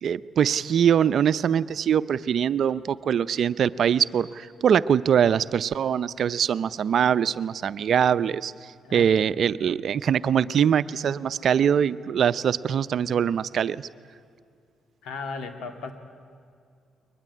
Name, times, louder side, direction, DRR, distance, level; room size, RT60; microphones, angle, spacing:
voice 1, 0.0-8.5 8.9-13.9, right 8 dB, 60° right, 15 dB, 0.6 m, -23 dB
voice 2, 15.0-15.9, left 4 dB, 80° left, 7 dB, 2.3 m, -35 dB
22.0 x 20.0 x 9.9 m, 2.3 s
cardioid pair, 90°, 0 cm